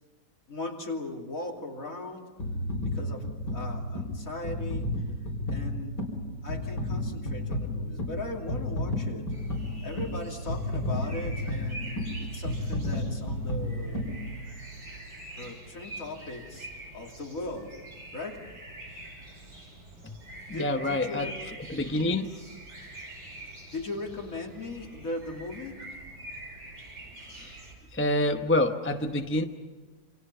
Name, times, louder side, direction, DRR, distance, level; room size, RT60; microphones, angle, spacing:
voice 1, 0.5-2.3 2.8-5.1 5.5-6.1 6.4-9.3 9.8-14.1 15.4-17.7 18.1-18.4 20.5-21.3 23.4-25.8, left 2 dB, 50° left, 0 dB, 3.3 m, -38 dB
sound 1, 2.4-14.8 15.4-15.5, left 1 dB, 70° left, 4.8 m, -32 dB
sound 2, 9.3-27.7, right 1 dB, 85° right, 6.5 m, -45 dB
voice 2, 20.5-21.3 21.7-22.3 27.3-27.6 27.9-29.4, left 1 dB, 10° left, 5 dB, 0.7 m, -27 dB
28.0 x 26.5 x 5.6 m, 1.3 s
omnidirectional pair, 1.9 m